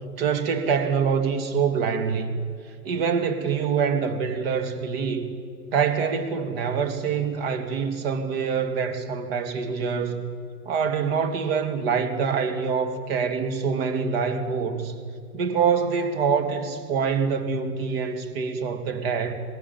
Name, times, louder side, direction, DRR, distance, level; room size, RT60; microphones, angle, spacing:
voice 1, 0.2-2.3 2.8-5.2 5.7-10.2 10.7-14.9 15.3-19.3, right 6 dB, 40° right, 8 dB, 2.5 m, -25 dB
22.5 x 21.0 x 7.4 m, 2.2 s
figure-of-eight pair, 110°, 46 cm